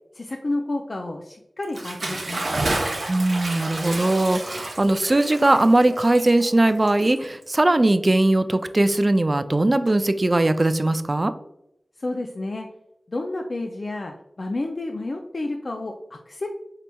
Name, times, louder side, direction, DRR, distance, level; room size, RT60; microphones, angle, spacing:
voice 1, 0.1-2.4 12.0-12.7 13.1-16.5, left 2 dB, 60° left, 2 dB, 0.3 m, -30 dB
Bathtub (filling or washing) / Splash splatter, 1.6-7.6, right 2 dB, 75° right, 0.6 m, -30 dB
voice 2, 3.1-11.3, right 2 dB, 40° right, 11 dB, 0.3 m, -20 dB
4.2 x 2.8 x 2.2 m, 0.82 s
cardioid pair, 40°, 0 cm